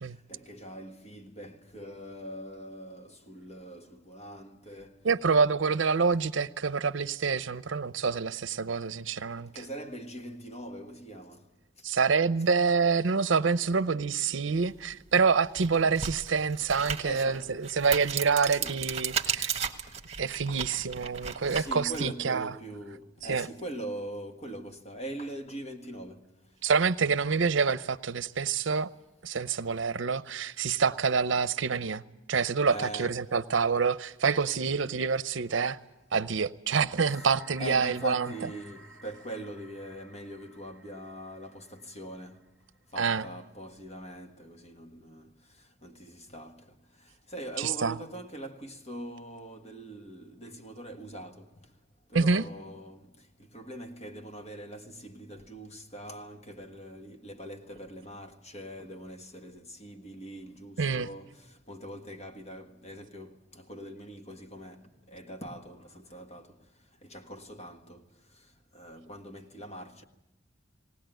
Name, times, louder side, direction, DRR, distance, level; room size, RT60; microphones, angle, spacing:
voice 1, 0.3-5.0 9.4-11.5 17.0-17.6 18.5-18.8 19.3-19.5 20.5-20.9 21.5-26.3 32.7-33.3 37.1-37.3 37.6-42.4 42.9-45.3 45.8-46.7 47.0-51.5 52.1-66.6 67.0-68.0 68.7-70.0, right 1 dB, 35° left, 1.6 m, -42 dB
voice 2, 5.0-9.5 11.8-19.5 20.2-22.5 23.3-23.5 26.6-28.9 29.2-32.0 32.3-35.8 36.1-38.3 43.0-43.2 47.6-47.9 52.1-52.4 60.8-61.1, right 5 dB, 75° right, 0.7 m, -27 dB
sound 1, 14.8-14.9 15.5-22.1, right 7 dB, 35° right, 1.4 m, -35 dB
sound 2, 37.1-42.8, equal, ahead, 2.2 m, -54 dB
19.0 x 19.0 x 9.0 m
head